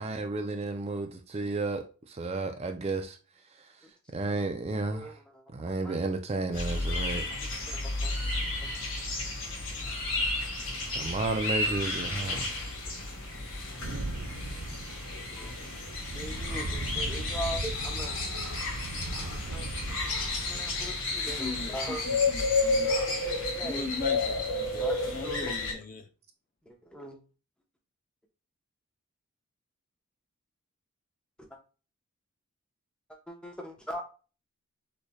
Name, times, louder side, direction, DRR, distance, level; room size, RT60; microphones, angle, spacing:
voice 1, 0.0-3.2 4.1-5.2 5.5-7.4 10.9-12.5, right 3 dB, 30° right, 0.4 m, -32 dB
voice 2, 4.9-5.4 5.8-6.0 7.7-8.1 8.6-8.7 12.2-12.4 12.8-12.9 15.4-15.6 16.1-18.2 19.5-19.7 20.4-22.0 23.2-23.9 24.8-25.6 26.7-27.2 31.5-31.6 33.1-34.0, equal, 5° left, 0.9 m, -40 dB
sound 1, 6.5-25.7, left 2 dB, 60° left, 1.6 m, -32 dB
sound 2, 13.8-20.9, right 2 dB, 75° right, 0.6 m, -38 dB
voice 3, 15.3-15.8 21.2-22.9 23.6-26.1, left 3 dB, 40° left, 0.6 m, -39 dB
sound 3, 17.3-19.7 20.0-20.6 21.7-22.3 22.8-23.4, left 4 dB, 90° left, 0.8 m, -47 dB
6.5 x 3.3 x 2.3 m
head